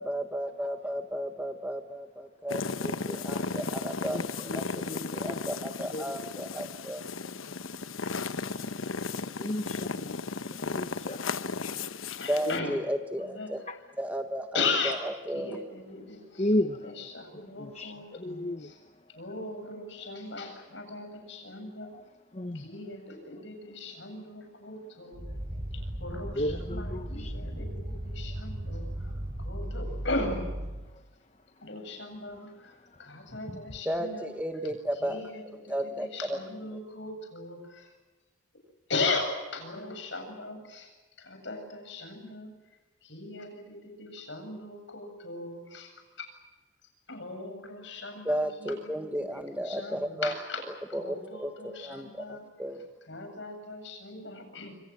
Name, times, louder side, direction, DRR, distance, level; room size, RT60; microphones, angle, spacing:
voice 1, 0.0-7.1 12.3-13.6 14.0-15.6 33.8-35.2 35.7-36.4 48.2-50.3 50.9-52.8, equal, 5° right, 7 dB, 1.4 m, -34 dB
sound 1, 2.5-12.6, left 4 dB, 90° left, 1.1 m, -35 dB
voice 2, 4.1-6.2 7.7-7.9 9.3-11.3 12.4-12.8 13.7-13.8 16.0-19.0 20.4-20.6 21.7-22.0 22.3-22.7 24.3-24.4 26.3-27.6 28.4-29.0 30.8-31.0 31.5-31.7 32.3-32.4 32.7-33.8, left 1 dB, 30° left, 8 dB, 0.9 m, -36 dB
voice 3, 12.1-12.8 13.2-13.5 14.5-15.0 15.3-16.5 16.8-18.7 19.1-21.9 22.5-25.2 25.7-29.1 29.4-30.5 31.6-34.3 35.0-37.9 38.9-40.9 41.2-42.5 43.0-46.3 47.1-52.5 53.1-54.9, left 3 dB, 65° left, 5 dB, 7.9 m, -38 dB
sound 2, 25.1-30.9, right 1 dB, 35° right, 3.1 m, -36 dB
27.5 x 25.5 x 7.6 m, 1.2 s
head